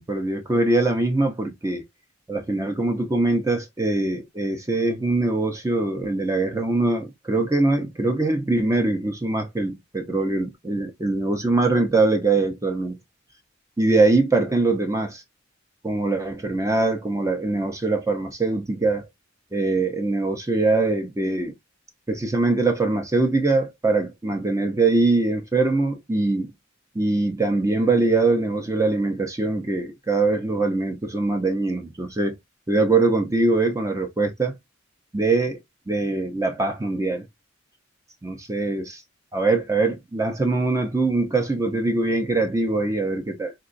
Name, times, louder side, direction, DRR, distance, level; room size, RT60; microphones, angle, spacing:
voice 1, 0.0-1.8 2.3-13.0 13.8-15.2 15.8-19.1 19.5-21.5 22.1-26.5 27.0-32.3 32.7-34.5 35.1-35.6 35.9-37.3 38.2-39.0 39.3-43.5, right 2 dB, 15° right, 0.5 m, -22 dB
3.7 x 2.2 x 2.5 m
head